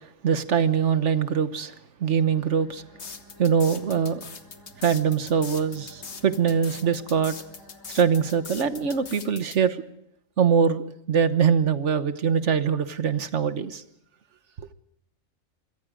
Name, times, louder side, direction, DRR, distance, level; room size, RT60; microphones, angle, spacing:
voice 1, 0.2-1.7 2.0-2.8 3.4-4.2 4.8-7.4 7.9-9.8 10.4-13.8, right 7 dB, 60° right, 1.4 m, -23 dB
sound 1, 2.2-9.1, left 1 dB, 80° left, 8.3 m, -52 dB
sound 2, 3.0-9.6, left 5 dB, 55° left, 1.6 m, -40 dB
25.5 x 23.5 x 5.1 m
omnidirectional pair, 1.4 m